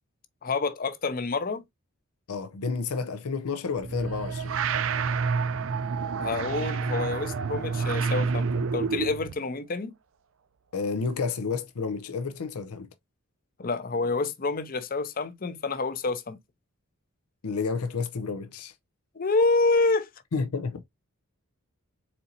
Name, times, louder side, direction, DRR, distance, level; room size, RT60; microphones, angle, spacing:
voice 1, 0.4-1.6 6.2-9.9 13.6-16.4 19.2-20.1, left 3 dB, 40° left, 0.6 m, -27 dB
voice 2, 2.3-4.6 10.7-12.9 17.4-18.7 20.3-20.8, left 4 dB, 90° left, 0.6 m, -30 dB
sound 1, 3.8-9.3, right 5 dB, 60° right, 0.4 m, -28 dB
4.2 x 4.1 x 2.6 m
head